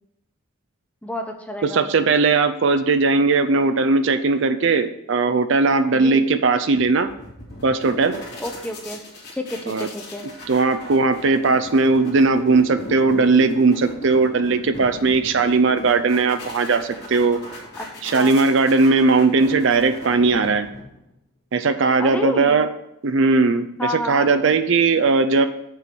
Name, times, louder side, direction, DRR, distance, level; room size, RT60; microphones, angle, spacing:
voice 1, 1.0-1.9 5.9-6.2 8.4-9.0 9.3-10.3 17.8-17.9 18.1-18.3 22.0-22.7 23.8-24.3, left 1 dB, 5° left, 5 dB, 0.6 m, -29 dB
voice 2, 1.6-7.1 7.6-8.2 9.7-9.9 10.5-17.4 18.0-20.7 21.5-22.7 23.0-23.7 23.9-25.5, right 4 dB, 60° right, 11 dB, 0.5 m, -18 dB
sound 1, 6.8-21.1, left 1 dB, 50° left, 2.2 m, -38 dB
6.8 x 4.7 x 6.8 m, 0.81 s
head